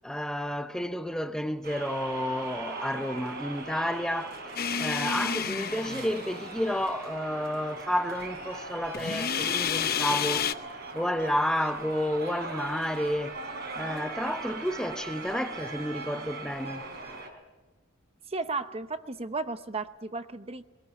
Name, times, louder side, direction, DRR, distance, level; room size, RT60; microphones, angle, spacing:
voice 1, 0.0-4.4 4.8-10.5 10.9-13.4 13.7-16.8, equal, 5° left, 0.7 m, -31 dB
sound 1, 1.6-17.3, right 3 dB, 50° right, 3.8 m, -40 dB
sound 2, 4.6-6.6 8.9-10.5, left 7 dB, 50° left, 0.7 m, -30 dB
voice 2, 18.3-20.7, right 3 dB, 30° right, 0.8 m, -34 dB
21.5 x 18.0 x 8.4 m
head